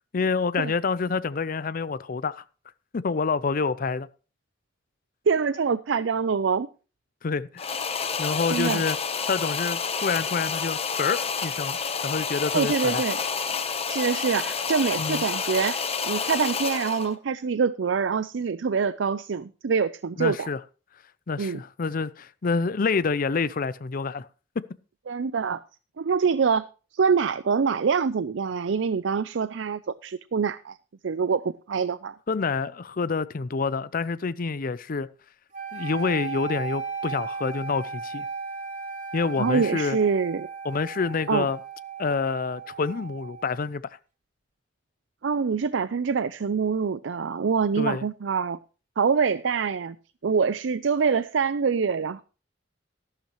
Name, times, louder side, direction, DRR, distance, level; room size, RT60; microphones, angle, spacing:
voice 1, 0.1-2.4 2.9-4.1 7.2-7.7 8.2-9.0 9.3-11.8 12.0-13.0 15.0-15.2 20.2-20.6 21.3-24.3 32.3-35.1 35.7-38.3 39.1-40.0 40.6-41.6 42.0-43.8 47.8-48.0, left 4 dB, 50° left, 0.5 m, -27 dB
voice 2, 5.3-6.7 8.5-8.8 12.5-13.2 13.9-20.5 21.4-21.6 25.1-25.6 26.0-26.6 26.9-30.8 31.0-32.2 39.4-40.5 41.3-41.5 45.2-48.6 49.0-50.0 50.2-52.2, right 5 dB, 85° right, 0.5 m, -25 dB
sound 1, 7.6-17.2, left 6 dB, 35° left, 1.0 m, -29 dB
sound 2, 35.5-43.6, right 5 dB, 45° right, 2.8 m, -36 dB
13.5 x 12.0 x 3.1 m
head